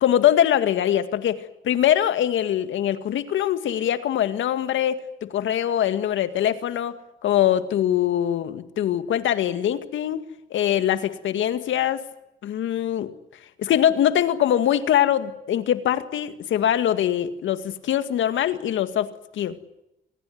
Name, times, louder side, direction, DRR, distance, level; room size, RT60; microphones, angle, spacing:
voice 1, 0.0-10.2 10.5-12.0 12.4-13.1 13.6-19.6, left 10 dB, 75° left, 10 dB, 2.1 m, -23 dB
26.0 x 19.0 x 9.5 m, 0.88 s
cardioid pair, 90°, 20 cm